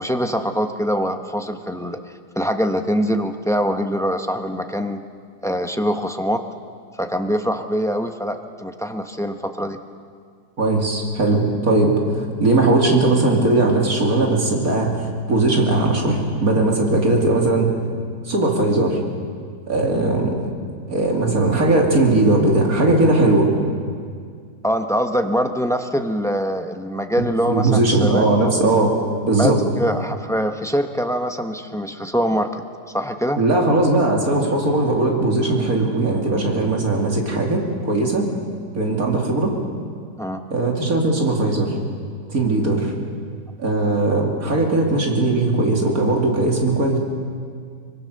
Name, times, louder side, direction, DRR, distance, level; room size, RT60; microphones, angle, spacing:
voice 1, 0.0-2.0 2.4-5.0 5.4-6.4 7.0-9.8 24.6-28.3 29.4-29.5 29.8-32.6 32.9-33.4 40.2-40.4, equal, 5° left, 6 dB, 0.6 m, -23 dB
voice 2, 10.6-17.7 18.2-19.0 19.7-20.5 20.9-23.5 27.5-28.9 29.3-29.6 33.4-38.3 38.7-39.5 40.5-41.7 42.3-42.9 43.6-47.0, right 2 dB, 55° right, 0 dB, 3.1 m, -19 dB
24.0 x 22.0 x 6.6 m, 2.1 s
omnidirectional pair, 1.9 m